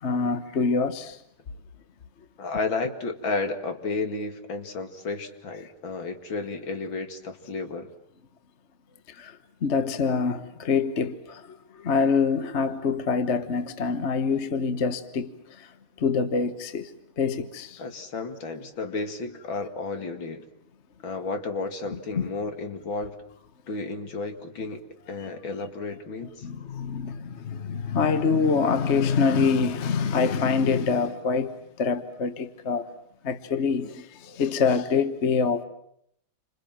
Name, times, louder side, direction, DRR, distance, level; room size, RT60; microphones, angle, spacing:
voice 1, 0.0-1.2 9.1-9.4 9.6-15.3 15.6-15.7 16.0-16.9 17.2-17.8 22.1-22.2 26.4-32.9 33.2-35.6, left 5 dB, 35° left, 1.3 m, -25 dB
voice 2, 2.4-7.9 17.8-20.4 21.0-23.2 23.7-24.8 25.1-26.5 33.8-33.9, left 3 dB, 65° left, 2.9 m, -32 dB
29.5 x 26.5 x 7.5 m
omnidirectional pair, 2.3 m